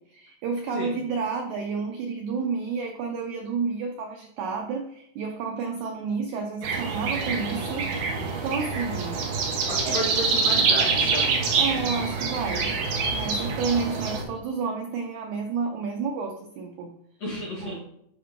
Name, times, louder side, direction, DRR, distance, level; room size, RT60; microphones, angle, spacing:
voice 1, 0.1-9.2 9.8-10.0 11.6-12.8 13.1-16.9 17.6-17.7, right 5 dB, 90° right, 3 dB, 1.6 m, -30 dB
sound 1, 6.6-14.2, right 4 dB, 65° right, 2.4 m, -26 dB
voice 2, 9.7-11.4 17.2-17.7, left 1 dB, 50° left, -7 dB, 2.8 m, -32 dB
10.5 x 4.7 x 3.6 m, 0.75 s
omnidirectional pair, 4.3 m